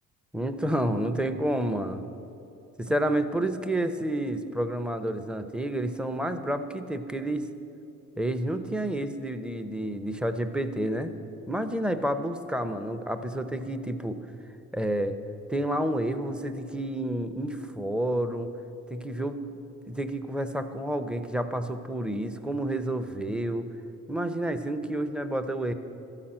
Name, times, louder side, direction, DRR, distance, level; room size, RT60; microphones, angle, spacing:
voice 1, 0.3-2.0 2.8-7.5 8.2-11.1 11.5-14.2 14.7-15.2 15.5-18.5 18.9-19.4 19.8-23.7 24.1-25.7, right 1 dB, 5° right, 10 dB, 0.6 m, -29 dB
12.5 x 5.8 x 8.8 m, 2.8 s
cardioid pair, 90°, 30 cm